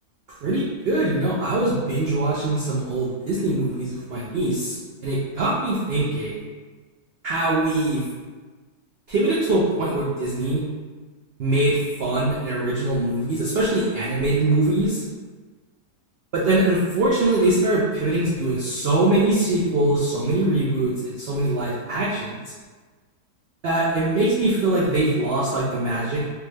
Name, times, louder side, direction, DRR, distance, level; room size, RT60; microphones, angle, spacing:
voice 1, 0.4-4.8 5.0-6.4 7.2-8.0 9.1-10.6 11.4-15.0 16.3-22.4 23.6-26.5, right 2 dB, 90° right, -6 dB, 0.5 m, -22 dB
3.4 x 2.0 x 3.2 m, 1.4 s
omnidirectional pair, 1.6 m